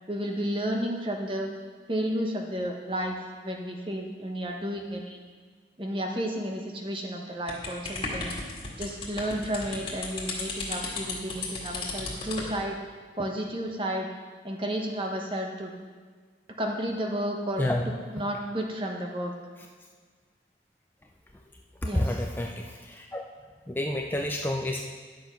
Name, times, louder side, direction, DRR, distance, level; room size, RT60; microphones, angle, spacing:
voice 1, 0.1-1.5 1.9-5.2 5.8-8.3 8.8-12.8 13.2-14.1 14.4-15.7 16.6-17.7 18.1-19.3 21.8-22.2, equal, 30° right, 1 dB, 1.1 m, -32 dB
sound 1, 7.5-12.5, left 3 dB, 30° left, 1.8 m, -35 dB
voice 2, 21.8-23.2 23.7-24.8, left 1 dB, 10° left, 1 dB, 0.5 m, -29 dB
11.0 x 6.9 x 5.3 m, 1.6 s
head